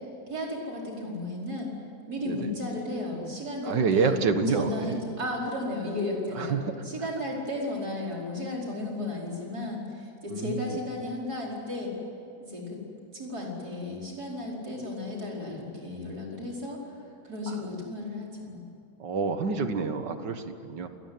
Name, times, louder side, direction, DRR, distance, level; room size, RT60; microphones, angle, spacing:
voice 1, 0.3-1.7 2.1-4.2 4.5-6.6 6.8-11.9 12.5-12.8 13.1-16.9 17.2-18.7, left 1 dB, 65° right, -2 dB, 5.5 m, -34 dB
voice 2, 3.6-5.0 6.4-6.9 10.3-10.8 17.5-17.6 19.0-20.9, right 5 dB, 90° right, 8 dB, 2.1 m, -28 dB
27.5 x 19.5 x 9.6 m, 2.6 s
omnidirectional pair, 1.8 m